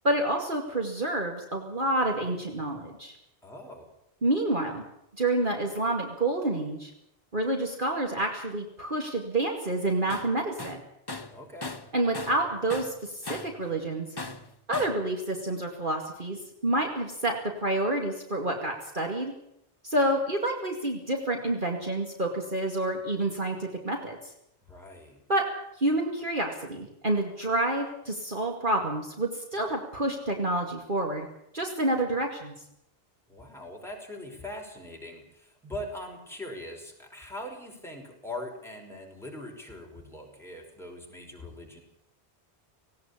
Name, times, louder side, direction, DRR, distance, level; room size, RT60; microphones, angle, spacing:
voice 1, 0.0-3.2 4.2-4.8 5.2-6.9 7.3-10.8 11.9-14.1 14.7-19.3 19.8-24.2 25.3-25.4 25.8-31.3 31.5-32.5, right 1 dB, 45° right, 2 dB, 2.6 m, -28 dB
voice 2, 3.4-3.9 11.3-11.8 24.7-25.2 33.3-41.8, left 1 dB, ahead, 1 dB, 5.3 m, -41 dB
Tools, 10.1-10.3 10.6-12.4 12.7-13.6 14.2-15.0, left 2 dB, 20° left, 1.1 m, -38 dB
18.5 x 17.5 x 8.5 m, 0.79 s
omnidirectional pair, 1.2 m